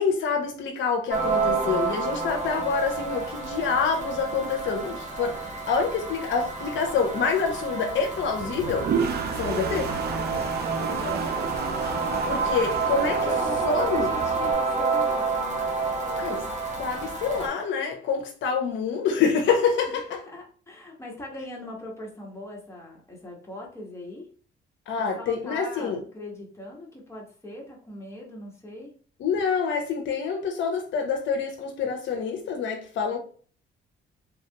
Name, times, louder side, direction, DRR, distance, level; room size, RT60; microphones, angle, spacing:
voice 1, 0.0-8.9 9.4-9.9 12.3-13.2 13.6-14.1 16.2-16.4 16.8-20.2 24.9-26.0 29.2-33.2, left 5 dB, 70° left, 0.6 m, -26 dB
sound 1, 1.1-17.5, right 4 dB, 35° right, 1.0 m, -29 dB
Toilet flush, 8.4-14.5, right 7 dB, 55° right, 0.4 m, -32 dB
voice 2, 9.4-11.5 12.9-15.6 16.0-16.4 19.9-24.3 25.0-28.9, left 1 dB, 15° left, 1.2 m, -40 dB
3.2 x 2.3 x 2.8 m
cardioid pair, 90°, 20 cm